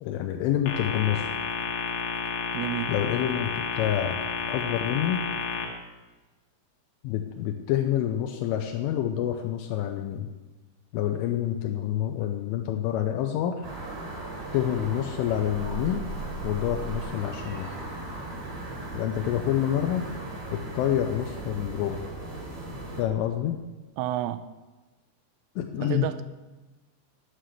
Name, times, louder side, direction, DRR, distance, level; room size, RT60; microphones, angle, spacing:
voice 1, 0.0-1.3 2.9-4.2 4.5-5.2 7.0-10.3 10.9-13.7 14.5-16.1 16.4-17.7 18.9-20.0 20.5-22.0 23.0-23.6 25.6-26.1, left 11 dB, 85° left, 4 dB, 3.1 m, -27 dB
sound 1, 0.7-5.6, left 5 dB, 70° left, 3.5 m, -31 dB
voice 2, 2.5-2.9 24.0-24.4 25.8-26.2, right 13 dB, 85° right, 12 dB, 3.1 m, -30 dB
sound 2, 13.6-23.0, right 2 dB, 60° right, 5.3 m, -38 dB
Meow, 15.5-20.2, right 3 dB, 5° left, 2.8 m, -41 dB
11.5 x 7.6 x 6.5 m, 1.2 s
omnidirectional pair, 5.8 m